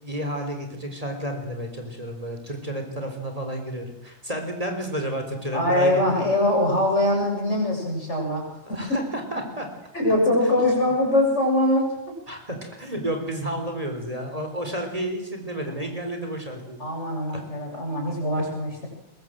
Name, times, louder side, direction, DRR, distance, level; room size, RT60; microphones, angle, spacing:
voice 1, 0.0-6.2 8.6-9.7 10.4-10.9 12.3-16.8 17.3-17.4, right 1 dB, 25° right, 4 dB, 4.1 m, -31 dB
voice 2, 5.5-8.4 8.7-8.8 9.9-11.9 14.6-14.8 15.7-15.9 16.8-18.9, left 1 dB, 55° left, 0 dB, 7.4 m, -22 dB
23.0 x 21.5 x 7.7 m, 0.83 s
omnidirectional pair, 1.4 m